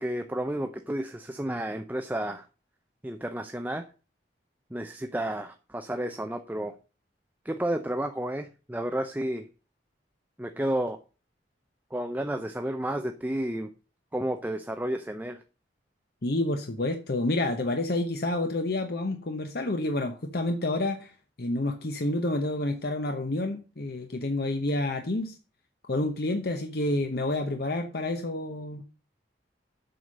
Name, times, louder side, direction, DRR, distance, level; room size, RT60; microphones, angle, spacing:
voice 1, 0.0-2.5 3.0-3.9 4.7-6.7 7.4-9.5 10.4-11.0 11.9-13.7 14.1-15.4, right 1 dB, 10° right, 0.5 m, -31 dB
voice 2, 16.2-21.1 21.4-25.4 25.9-28.8, left 2 dB, 55° left, 0.9 m, -29 dB
7.9 x 5.8 x 6.6 m
head